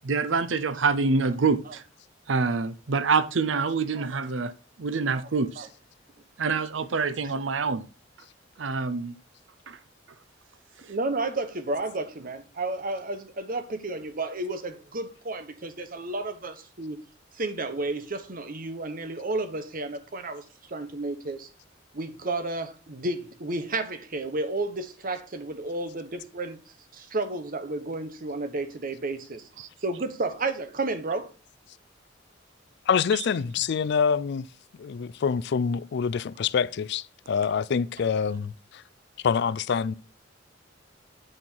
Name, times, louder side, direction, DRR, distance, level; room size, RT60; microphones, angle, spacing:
voice 1, 0.0-1.8 2.3-4.5 4.8-5.7 6.4-7.8 8.6-9.1 9.7-9.8 29.6-29.7, right 4 dB, 85° right, 0.7 m, -26 dB
voice 2, 10.9-17.0 17.3-21.5 21.9-26.6 26.9-29.5 29.8-31.3, right 2 dB, 50° right, 1.0 m, -32 dB
voice 3, 32.9-34.5 34.8-38.8 39.2-39.9, left 6 dB, 60° left, 0.4 m, -26 dB
8.7 x 4.5 x 5.5 m
head